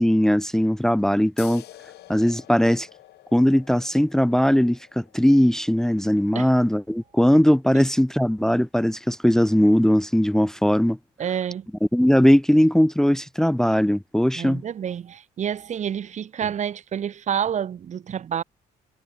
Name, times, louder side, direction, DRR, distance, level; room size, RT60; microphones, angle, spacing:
voice 1, 0.0-1.6 2.1-2.9 3.3-11.0 11.9-14.6, equal, 5° left, 0.6 m, -19 dB
sound 1, 1.4-8.5, left 14 dB, 75° left, 6.7 m, -49 dB
voice 2, 11.2-11.7 14.3-18.4, right 8 dB, 45° right, 1.6 m, -28 dB
cardioid pair, 110°, 17 cm